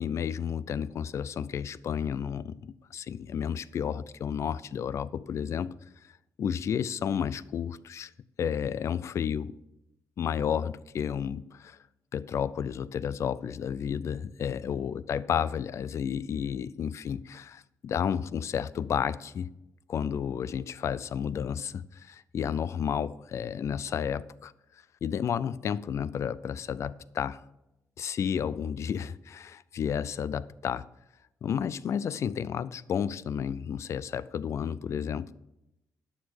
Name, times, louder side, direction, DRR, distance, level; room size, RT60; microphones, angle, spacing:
voice 1, 0.0-6.1 6.4-8.1 8.4-9.5 10.2-11.8 12.1-19.5 19.9-24.5 25.0-27.4 28.0-30.9 31.4-35.3, left 8 dB, 50° left, 0.4 m, -32 dB
11.5 x 6.4 x 6.5 m
cardioid pair, 140°, 6 cm